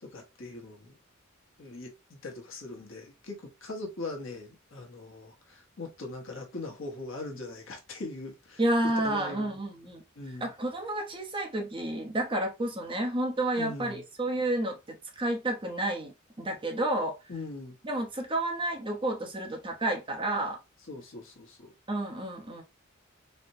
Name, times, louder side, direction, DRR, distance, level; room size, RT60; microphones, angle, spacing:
voice 1, 0.0-1.0 1.6-8.6 9.0-9.6 10.2-10.5 13.6-14.0 17.3-17.8 20.9-21.7, left 2 dB, 70° left, 1.0 m, -41 dB
voice 2, 8.6-10.0 10.4-17.1 17.8-20.6 21.9-22.6, right 1 dB, 25° right, 0.8 m, -30 dB
4.2 x 2.1 x 2.6 m
head